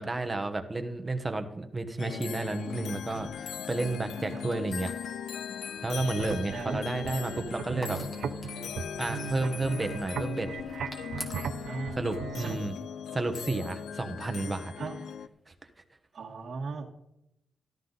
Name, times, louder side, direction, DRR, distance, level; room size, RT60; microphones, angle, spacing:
voice 1, 0.0-4.9 5.8-8.0 9.0-10.8 12.0-12.8 13.1-14.7, right 2 dB, 20° right, 7 dB, 1.1 m, -32 dB
sound 1, 2.0-15.3, left 8 dB, 90° left, 0.5 m, -39 dB
sound 2, 2.6-11.7, left 2 dB, 35° left, 2.3 m, -50 dB
voice 2, 4.2-4.5 6.5-6.8 11.6-12.0 12.3-12.5 14.8-15.0 16.1-16.9, right 4 dB, 50° right, -2 dB, 1.6 m, -37 dB
sound 3, 5.8-12.5, right 7 dB, 70° right, 0.7 m, -38 dB
13.5 x 12.5 x 4.0 m, 0.84 s
wide cardioid pair, 160°, 0 cm